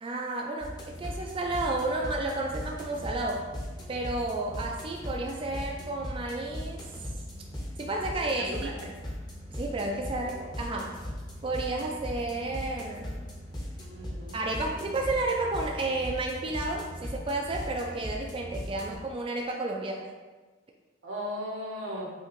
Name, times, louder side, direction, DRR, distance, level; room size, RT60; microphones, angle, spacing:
voice 1, 0.0-3.5 3.9-6.8 7.8-8.5 9.5-11.0 11.4-13.2 14.3-20.1, right 2 dB, 30° right, 0 dB, 0.3 m, -32 dB
sound 1, 0.6-19.0, equal, 20° left, 0.8 m, -39 dB
voice 2, 8.2-8.7 13.9-14.8 21.0-22.1, equal, 90° right, -2 dB, 1.1 m, -37 dB
5.5 x 2.9 x 3.0 m, 1.3 s
head